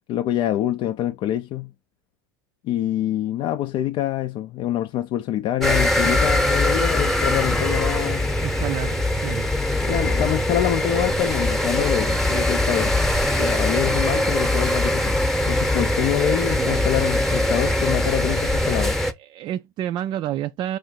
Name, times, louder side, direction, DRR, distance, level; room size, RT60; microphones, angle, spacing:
voice 1, 0.1-1.7 2.6-8.3 9.8-13.0 13.4-15.2 15.5-19.0, left 12 dB, 45° left, 0.5 m, -25 dB
sound 1, 5.6-19.1, left 1 dB, ahead, 0.9 m, -22 dB
voice 2, 8.4-9.5 16.4-16.8 19.3-20.8, right 12 dB, 40° right, 0.3 m, -29 dB
4.8 x 2.6 x 4.2 m
hypercardioid pair, 100°, 12 cm